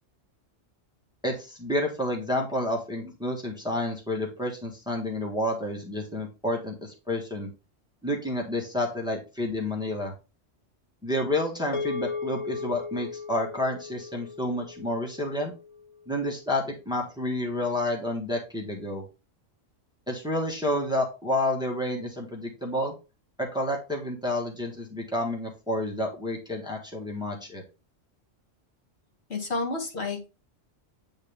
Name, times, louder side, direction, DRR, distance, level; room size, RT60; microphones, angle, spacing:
voice 1, 1.2-7.5 8.0-10.1 11.0-15.5 16.1-19.0 20.1-22.9 23.4-27.6, left 1 dB, 5° right, 0 dB, 1.5 m, -30 dB
sound 1, 11.7-16.2, left 5 dB, 25° left, 1.2 m, -37 dB
voice 2, 29.3-30.3, left 3 dB, 55° left, 1 dB, 1.8 m, -30 dB
8.7 x 3.9 x 3.4 m, 0.30 s
omnidirectional pair, 1.3 m